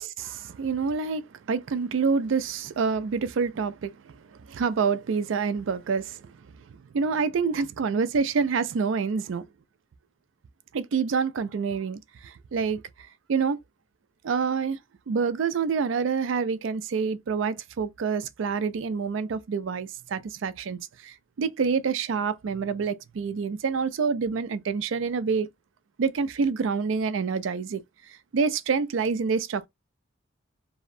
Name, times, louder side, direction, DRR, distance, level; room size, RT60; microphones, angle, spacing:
voice 1, 0.0-4.2 4.5-6.3 6.9-9.5 10.7-12.8 13.3-13.6 14.2-14.8 15.1-25.5 26.0-27.8 28.1-29.7, right 5 dB, 85° right, 0.4 m, -27 dB
2.7 x 2.1 x 2.5 m
head